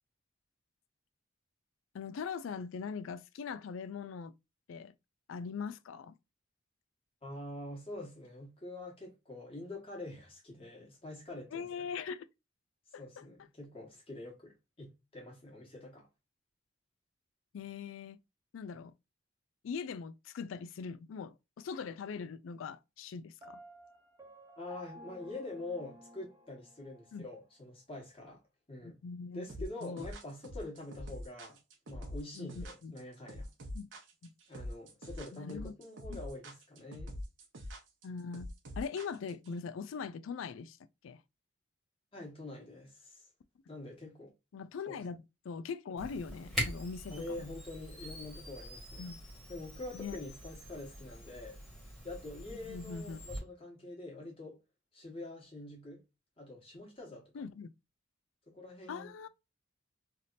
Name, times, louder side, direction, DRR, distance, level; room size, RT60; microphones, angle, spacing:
voice 1, 1.9-4.3 4.7-4.9 5.3-6.2 11.5-12.3 12.9-13.5 17.5-18.2 18.5-18.9 19.6-23.6 27.1-27.3 28.8-29.5 29.8-30.1 32.3-32.9 33.7-33.9 34.2-34.3 35.3-35.7 36.1-36.2 38.0-40.8 41.0-41.2 44.5-47.5 49.0-49.2 49.9-50.2 52.6-53.2 57.3-57.7 58.9-59.3, left 5 dB, 80° left, 0.3 m, -41 dB
voice 2, 7.2-11.9 13.0-16.1 24.6-28.4 28.7-29.0 29.3-31.6 31.9-33.5 34.5-37.1 42.1-43.2 43.7-44.3 44.9-45.0 47.1-49.1 49.5-51.6 52.0-54.6 54.9-56.0 56.4-57.3 58.5-59.1, left 2 dB, 30° left, 1.4 m, -45 dB
Piano, 23.4-27.3, equal, 15° right, 0.6 m, -54 dB
sound 1, 29.5-39.5, equal, 75° right, 0.9 m, -44 dB
Camera, 46.0-53.4, equal, ahead, 1.3 m, -43 dB
3.4 x 2.8 x 2.5 m
head